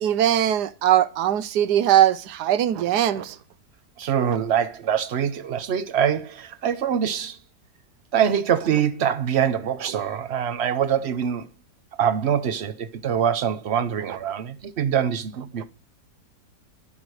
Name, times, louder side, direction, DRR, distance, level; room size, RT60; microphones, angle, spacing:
voice 1, 0.0-3.4 9.9-10.0, right 11 dB, 80° right, 1.3 m, -20 dB
voice 2, 4.0-7.4 8.1-11.5 12.0-15.7, right 8 dB, 55° right, 0.8 m, -24 dB
15.0 x 6.1 x 4.9 m
omnidirectional pair, 1.8 m